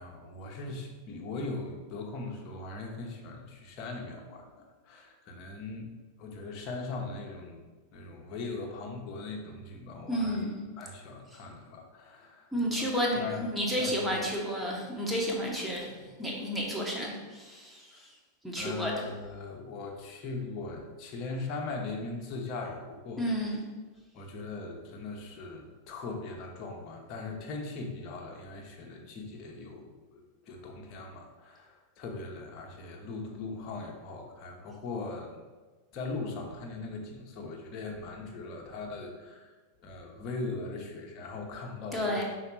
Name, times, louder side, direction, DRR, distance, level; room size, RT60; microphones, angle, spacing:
voice 1, 0.0-5.9 6.2-7.6 7.9-10.4 10.8-12.5 12.8-13.5 13.8-14.3 17.9-18.1 18.5-23.2 24.1-35.4 35.9-39.5 39.8-42.2, left 3 dB, 35° left, 1 dB, 1.1 m, -40 dB
voice 2, 10.1-10.6 12.5-18.1 18.4-18.9 23.2-23.6 41.9-42.2, equal, ahead, -3 dB, 1.4 m, -31 dB
5.6 x 4.1 x 4.6 m, 1.3 s
figure-of-eight pair, 90°, 0 cm